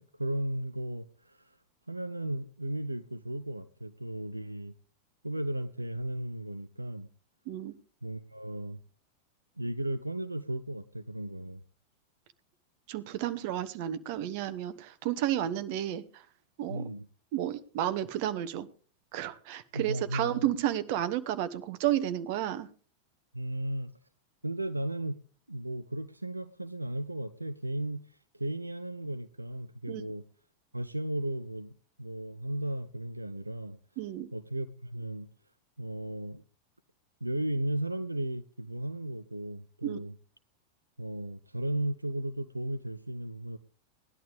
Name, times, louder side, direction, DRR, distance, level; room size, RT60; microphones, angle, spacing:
voice 1, 0.0-1.6 1.9-4.7 5.2-7.1 8.0-8.8 9.6-11.6 16.7-17.1 19.7-20.5 23.3-23.9 24.4-25.2 25.5-30.2 30.7-33.8 34.3-35.3 35.8-36.4 37.2-40.1 41.0-43.6, right 1 dB, 85° right, 11 dB, 0.5 m, -35 dB
voice 2, 12.9-16.2 16.6-16.9 17.3-18.7 19.1-22.7 29.8-30.0 34.0-34.3 39.8-40.0, right 12 dB, 45° right, 12 dB, 1.1 m, -32 dB
18.0 x 11.5 x 3.5 m, 0.40 s
figure-of-eight pair, 90°, 0 cm